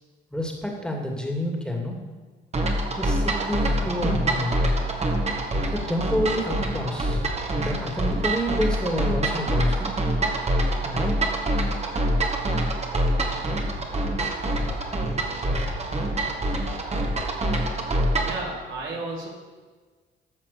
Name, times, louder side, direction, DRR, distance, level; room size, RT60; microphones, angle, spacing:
voice 1, 0.3-2.0 3.0-4.6 5.7-7.2 7.5-10.0 10.8-11.1, equal, 5° left, 1 dB, 2.4 m, -29 dB
sound 1, 2.5-18.4, right 1 dB, 35° right, 1.9 m, -25 dB
voice 2, 18.2-19.3, right 2 dB, 85° right, -2 dB, 3.1 m, -33 dB
14.5 x 5.6 x 6.9 m, 1.4 s
cardioid pair, 90°, 20 cm